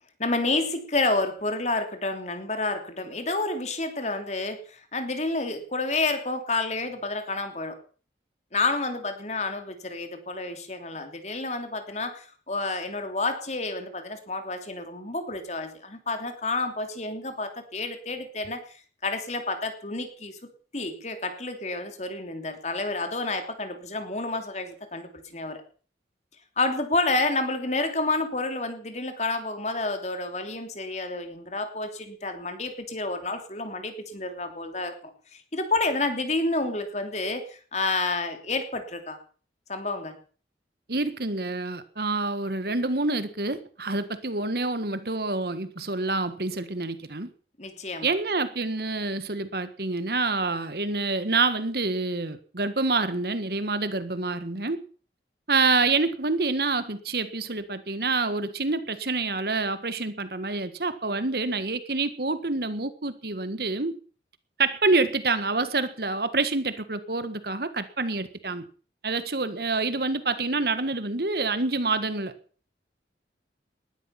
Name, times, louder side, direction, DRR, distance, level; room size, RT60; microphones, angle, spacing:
voice 1, 0.2-7.8 8.5-18.6 19.0-25.6 26.6-35.1 35.5-39.2 39.7-40.2 47.6-48.1, left 2 dB, 40° left, 7 dB, 3.0 m, -29 dB
voice 2, 40.9-47.3 48.0-54.8 55.5-63.9 64.6-68.6 69.0-72.3, right 3 dB, 60° right, 12 dB, 1.5 m, -27 dB
19.5 x 12.5 x 5.9 m, 0.42 s
head